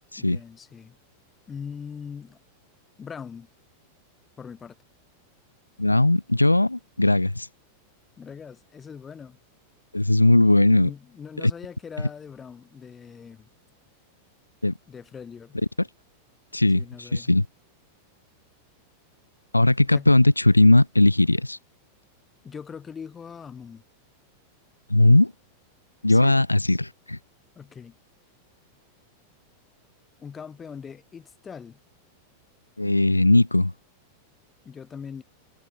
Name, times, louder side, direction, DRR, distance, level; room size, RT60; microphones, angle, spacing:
voice 1, 0.2-1.0 1.5-2.4 3.0-3.5 4.4-4.8 8.2-9.4 10.8-13.5 14.9-15.6 16.7-17.3 19.9-20.1 22.4-23.8 26.1-26.4 27.6-28.0 30.2-31.8 34.6-35.2, left 6 dB, 20° left, 4.2 m, -41 dB
voice 2, 5.8-7.5 9.9-10.9 11.4-11.5 14.6-14.7 15.8-15.9 16.5-17.5 19.5-21.6 24.9-25.3 26.0-27.2 32.8-33.7, left 2 dB, 90° left, 0.4 m, -19 dB
figure-of-eight pair, 90°, 0 cm